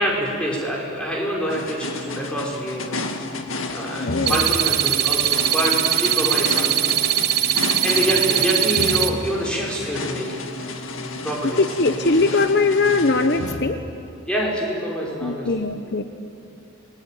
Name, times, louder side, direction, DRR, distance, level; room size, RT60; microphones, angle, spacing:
voice 1, 0.0-3.0 3.7-6.9 7.5-10.4 11.2-11.6 14.3-15.6, equal, 5° left, -3 dB, 5.5 m, -26 dB
sound 1, 1.5-14.2, left 2 dB, 80° left, 2.1 m, -31 dB
voice 2, 4.0-4.5 11.4-13.8 15.2-16.0, left 3 dB, 50° left, 7 dB, 1.0 m, -20 dB
sound 2, 4.3-9.1, right 12 dB, 50° right, 1.1 m, -21 dB
29.0 x 20.5 x 9.2 m, 2.6 s
head